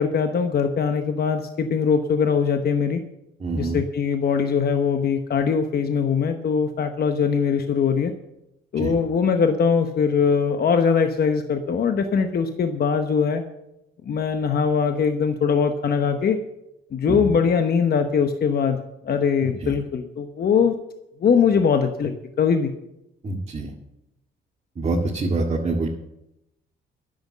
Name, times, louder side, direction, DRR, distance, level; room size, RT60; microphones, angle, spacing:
voice 1, 0.0-3.0 3.5-8.1 8.7-13.4 14.1-16.4 16.9-18.8 19.0-20.8 21.2-22.7, left 6 dB, 50° left, 7 dB, 1.0 m, -21 dB
voice 2, 3.4-3.8 8.8-8.9 17.1-17.3 19.4-19.7 23.2-23.7 24.8-25.9, right 3 dB, 35° right, -2 dB, 2.0 m, -26 dB
10.5 x 7.9 x 7.3 m, 0.85 s
cardioid pair, 90°, 20 cm